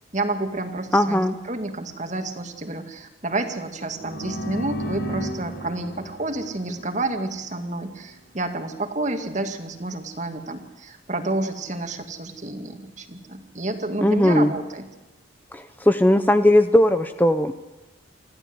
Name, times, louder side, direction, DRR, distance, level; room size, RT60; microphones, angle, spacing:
voice 1, 0.1-14.9, right 2 dB, 40° right, 6 dB, 2.1 m, -29 dB
voice 2, 0.9-1.3 14.0-14.5 15.5-17.5, left 1 dB, 10° left, 9 dB, 0.6 m, -18 dB
sound 1, 3.9-7.6, right 1 dB, 55° left, 2.4 m, -34 dB
26.0 x 15.0 x 7.9 m, 1.1 s
head